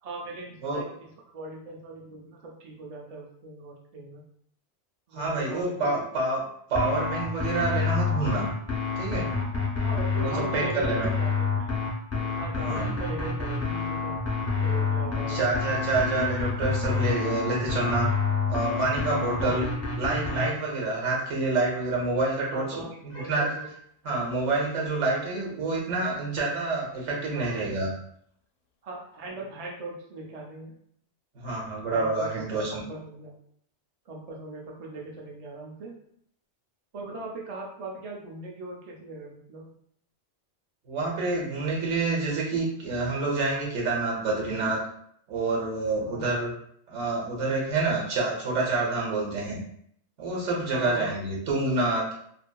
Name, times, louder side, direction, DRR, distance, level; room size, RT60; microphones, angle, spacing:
voice 1, 0.0-4.2 5.1-6.0 9.8-11.7 12.3-14.2 14.6-15.6 16.9-17.1 19.3-19.6 22.5-23.7 25.3-25.5 27.3-27.6 28.8-30.7 31.9-33.3 34.1-36.0 36.9-39.7 46.0-46.3 50.7-51.1, right 2 dB, 45° right, -2 dB, 0.5 m, -39 dB
voice 2, 5.1-6.4 6.7-8.4 9.0-9.3 10.2-11.1 12.6-12.9 15.3-18.1 18.5-19.7 20.0-22.6 23.0-23.5 24.0-27.9 31.3-32.8 40.9-44.8 45.3-46.5 46.9-49.6 50.2-52.0, right 3 dB, 80° right, -2 dB, 1.1 m, -27 dB
sound 1, 6.7-20.5, left 5 dB, 25° left, 0.3 m, -28 dB
Meow, 23.1-23.8 24.6-24.7 25.2-25.3 29.2-29.3, right 1 dB, 80° left, 0.9 m, -43 dB
2.7 x 2.5 x 2.2 m, 0.67 s
omnidirectional pair, 1.2 m